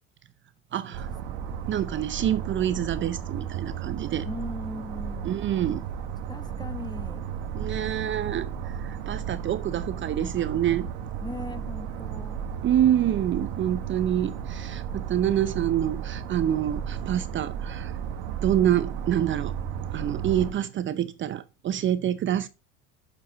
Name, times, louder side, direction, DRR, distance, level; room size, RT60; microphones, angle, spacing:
voice 1, 0.7-1.1 1.7-4.3 5.3-5.8 7.5-10.9 12.6-17.9 18.4-19.5 19.9-22.5, right 11 dB, 40° right, 0.6 m, -26 dB
sound 1, 0.9-20.5, right 8 dB, 80° right, 1.5 m, -34 dB
voice 2, 4.2-5.4 6.3-7.3 9.7-10.1 11.2-12.4, left 2 dB, 15° left, 0.9 m, -39 dB
7.2 x 6.6 x 3.9 m
supercardioid pair, 95°, 32 cm